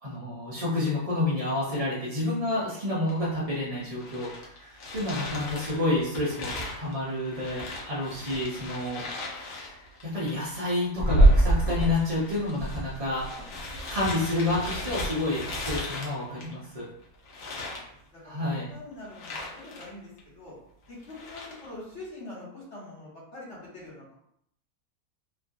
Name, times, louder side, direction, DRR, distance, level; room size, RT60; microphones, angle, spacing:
voice 1, 0.0-4.3 4.6-9.0 9.3-9.7 10.0-13.3 13.9-16.9 18.2-18.6, left 2 dB, 45° right, -8 dB, 0.4 m, -29 dB
sound 1, 3.1-3.2 3.5-16.8 17.3-17.9 19.1-19.9 20.2-20.3 20.9-21.7, right 1 dB, 80° left, 1.2 m, -29 dB
voice 2, 13.3-14.0 17.4-18.2 18.7-20.5 20.9-24.1, left 2 dB, 50° left, -6 dB, 1.4 m, -45 dB
3.1 x 2.4 x 2.5 m, 0.72 s
omnidirectional pair, 1.6 m